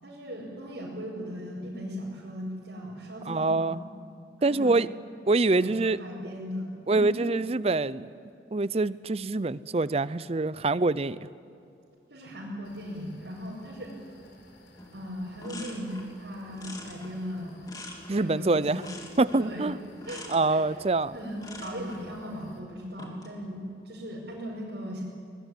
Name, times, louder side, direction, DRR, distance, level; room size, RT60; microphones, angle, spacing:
voice 1, 0.0-3.9 4.4-4.7 5.6-7.1 12.1-14.0 14.9-17.6 18.1-18.8 19.4-19.6 20.1-20.6 21.1-25.0, equal, 75° right, -5 dB, 5.6 m, -38 dB
voice 2, 3.3-3.8 4.4-4.9 5.3-6.0 6.9-8.1 8.5-11.2 18.1-18.8 19.2-19.8 20.3-21.1, right 3 dB, 35° right, 17 dB, 0.6 m, -25 dB
sound 1, 12.6-22.6, left 1 dB, 65° left, 4.3 m, -57 dB
sound 2, 14.8-14.9 15.2-16.2 16.5-18.4 18.8-19.6 20.0-20.5 21.4-22.1 22.8-23.3, left 2 dB, 20° left, 2.8 m, -44 dB
23.0 x 20.5 x 9.9 m, 2.5 s
head